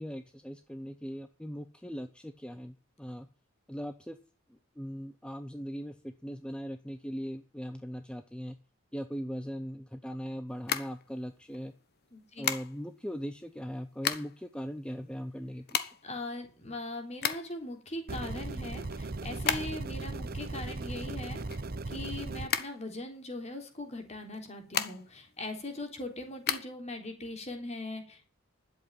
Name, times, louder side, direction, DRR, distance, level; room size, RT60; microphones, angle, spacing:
voice 1, 0.0-3.3 3.7-4.2 4.5-8.6 8.9-11.7 12.4-15.9, equal, 5° left, 8 dB, 0.7 m, -40 dB
sound 1, 10.5-11.6 12.4-13.0 13.7-14.5 14.8-14.9 15.1-17.7 18.1-20.0 20.3-22.1 22.5-23.5 24.2-25.3 25.6-26.6, left 8 dB, 50° left, 1.2 m, -34 dB
voice 2, 12.1-12.5 16.0-28.3, left 2 dB, 30° left, 4 dB, 3.3 m, -40 dB
sound 2, 18.1-22.5, right 2 dB, 45° right, 0.8 m, -37 dB
12.0 x 8.0 x 9.0 m, 0.38 s
head